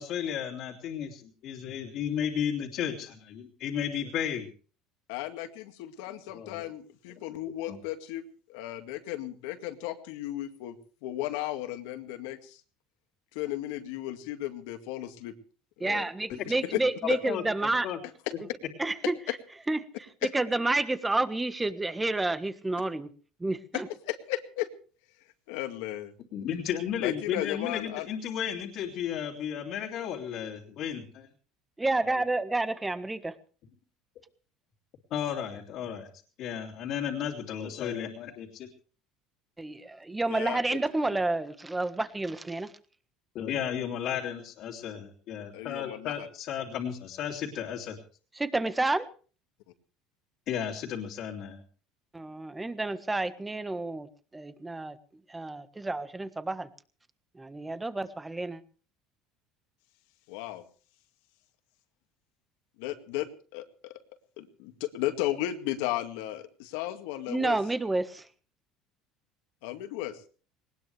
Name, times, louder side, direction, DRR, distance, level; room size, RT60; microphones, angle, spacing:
voice 1, 0.0-4.5 6.3-6.7 7.7-7.8 16.3-16.4 17.3-18.0 26.3-31.3 32.1-32.2 35.1-36.1 36.4-38.7 43.3-48.0 50.5-51.6, left 9 dB, 55° left, -2 dB, 2.9 m, -34 dB
voice 2, 5.1-8.2 8.5-10.8 11.0-12.6 13.3-15.3 15.8-16.1 16.5-16.8 17.1-17.2 19.3-19.4 20.2-20.3 23.7-24.7 25.5-26.1 27.0-28.1 40.3-40.8 45.5-46.3 60.3-60.6 62.8-63.3 63.5-64.0 64.4-67.6 69.6-70.2, left 14 dB, 80° left, 8 dB, 2.1 m, -35 dB
voice 3, 15.8-17.9 18.8-19.1 19.7-19.8 20.3-23.1 23.4-23.9 31.8-33.3 39.6-42.7 48.4-49.1 52.1-54.1 54.3-55.0 55.3-56.7 57.3-58.6 67.3-68.3, right 2 dB, 10° right, 12 dB, 1.4 m, -29 dB
20.0 x 19.5 x 3.4 m, 0.40 s
supercardioid pair, 115°, 0 cm